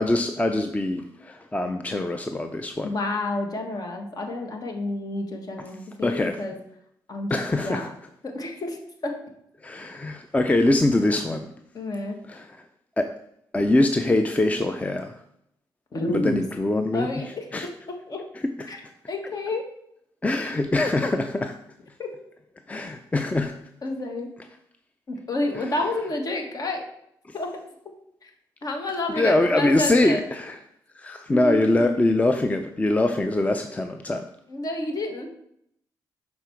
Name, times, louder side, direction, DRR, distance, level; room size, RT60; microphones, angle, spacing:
voice 1, 0.0-2.9 6.0-6.4 7.3-7.9 9.6-11.5 12.3-12.6 13.0-13.1 13.5-15.1 16.1-17.7 18.4-18.7 20.2-21.5 22.7-23.5 25.5-25.7 29.1-30.6 31.0-34.2, left 2 dB, 15° left, 7 dB, 0.5 m, -23 dB
voice 2, 2.8-6.6 7.1-7.9 8.2-8.8 9.0-9.1 11.7-12.2 15.9-16.4 16.9-18.2 18.7-18.8 19.1-19.7 22.0-22.1 23.8-24.3 25.1-26.8 27.3-27.6 28.2-28.3 28.6-30.2 31.3-31.9 34.5-35.3, left 2 dB, 50° left, 3 dB, 1.4 m, -29 dB
6.6 x 4.2 x 4.5 m, 0.74 s
supercardioid pair, 60°, 8 cm